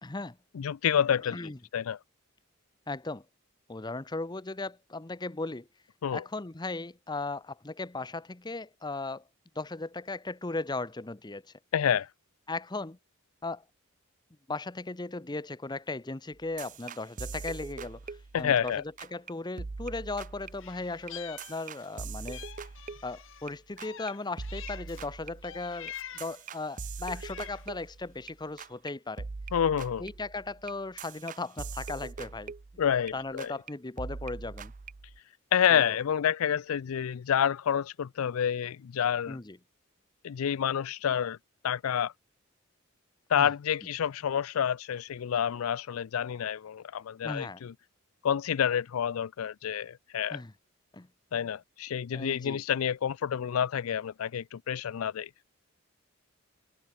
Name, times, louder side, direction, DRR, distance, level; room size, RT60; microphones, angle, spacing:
voice 1, 0.0-0.4 1.2-1.6 2.9-3.2 3.7-5.7 6.1-9.2 9.5-11.5 12.5-13.0 13.4-13.6 14.5-22.4 23.0-29.3 30.0-32.5 33.1-34.7 35.7-36.0 39.3-39.6 43.4-43.5 47.2-47.6 50.3-50.5 50.9-51.1 52.1-52.6, left 3 dB, 20° left, 0.8 m, -37 dB
voice 2, 0.5-1.4 1.7-2.0 6.0-6.2 11.7-12.1 18.3-18.8 29.5-30.0 32.8-33.5 35.5-39.4 40.2-41.4 41.6-42.1 43.3-47.7 48.2-50.4 51.3-55.3, left 8 dB, 90° left, 0.4 m, -28 dB
sound 1, 16.3-18.7 19.0-19.3 19.6-23.5 23.8-24.1 24.4-28.3 28.6-28.9 29.2-33.1 33.4-33.7 34.0-35.2, right 4 dB, 40° right, 0.5 m, -42 dB
Meow, 20.6-21.9 22.3-25.1 25.4-26.4 27.0-27.8, left 10 dB, 65° left, 1.3 m, -46 dB
head